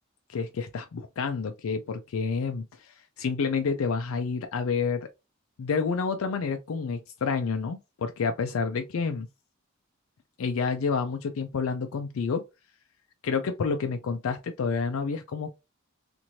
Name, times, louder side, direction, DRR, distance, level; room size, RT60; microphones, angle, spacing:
voice 1, 0.3-5.1 5.6-9.3 10.4-12.4 13.2-15.5, left 5 dB, 75° left, 0.4 m, -29 dB
3.0 x 2.5 x 2.7 m
head